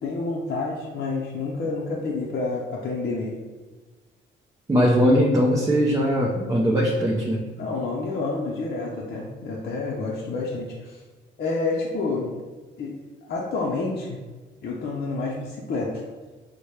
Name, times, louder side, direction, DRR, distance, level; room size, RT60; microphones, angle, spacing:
voice 1, 0.0-3.3 7.6-11.0 11.4-12.4 12.8-14.2 14.6-16.0, left 3 dB, 55° left, -3 dB, 0.6 m, -29 dB
voice 2, 4.7-7.4, equal, 15° right, -4 dB, 0.5 m, -20 dB
4.2 x 2.1 x 3.2 m, 1.3 s
cardioid pair, 90°, 20 cm